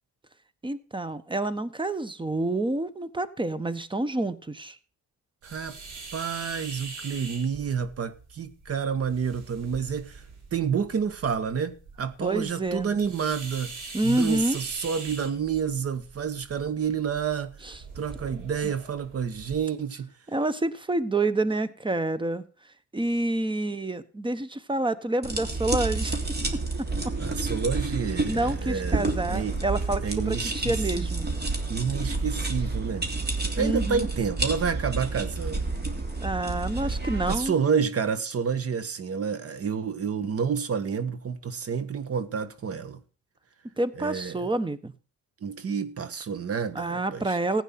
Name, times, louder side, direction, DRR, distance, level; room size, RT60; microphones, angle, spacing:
voice 1, 0.6-4.8 12.2-12.9 13.9-14.6 17.6-17.7 20.3-22.4 22.9-26.2 27.0-27.1 28.2-31.3 33.6-34.1 36.2-37.5 43.8-44.9 46.7-47.6, right 2 dB, 15° right, 1.2 m, -28 dB
voice 2, 5.4-5.8 6.1-10.2 10.5-13.7 14.0-17.5 17.9-20.1 27.2-29.6 30.0-31.1 31.7-33.1 33.6-35.7 37.3-43.0 44.0-44.5 45.4-47.4, right 6 dB, 50° right, 1.6 m, -29 dB
sound 1, 5.4-19.6, right 3 dB, 75° right, 5.1 m, -43 dB
sound 2, 25.2-37.4, right 3 dB, 35° right, 3.2 m, -29 dB
15.5 x 9.1 x 6.0 m
cardioid pair, 90°, 30 cm